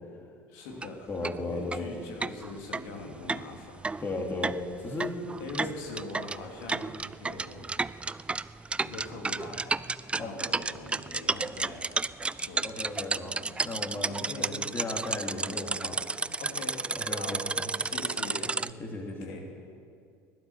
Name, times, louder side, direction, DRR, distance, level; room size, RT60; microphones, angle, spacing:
voice 1, 0.5-1.1 1.4-3.8 5.4-7.7 8.8-9.8 10.2-11.9 12.3-12.7 14.0-14.6 16.4-16.8 17.1-17.4 17.7-18.6 19.2-19.4, left 3 dB, 80° left, 1 dB, 2.9 m, -42 dB
sound 1, 0.7-0.9 1.2-1.4 1.7-1.8 2.2-18.7, right 3 dB, 15° right, 0.3 m, -32 dB
voice 2, 1.1-1.9 4.0-5.1 10.2-10.3 12.6-13.4 13.6-16.0 17.0-17.7 18.6-19.4, left 2 dB, 30° left, 1 dB, 2.8 m, -36 dB
16.0 x 12.0 x 7.2 m, 2.3 s
supercardioid pair, 90°, 8 cm